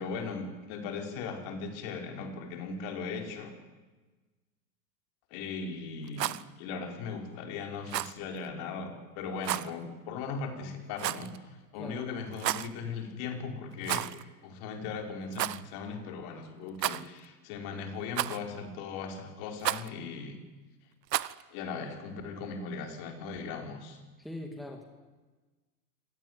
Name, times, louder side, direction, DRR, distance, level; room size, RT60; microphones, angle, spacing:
voice 1, 0.0-3.5 5.3-14.1 14.4-20.4 21.5-24.0, left 5 dB, 50° left, 4 dB, 5.1 m, -38 dB
Rattle, 6.0-6.4 7.9-8.2 9.4-9.7 11.0-11.4 12.3-12.7 13.8-14.2 14.5-14.6 15.3-15.6 16.8-17.3 18.2-18.6 19.6-19.9 21.1-21.4, right 13 dB, 90° right, 1.0 m, -32 dB
voice 2, 11.7-12.1 24.2-24.8, left 1 dB, ahead, 3 dB, 2.5 m, -41 dB
26.0 x 18.0 x 9.7 m, 1.3 s
hypercardioid pair, 130°, 48 cm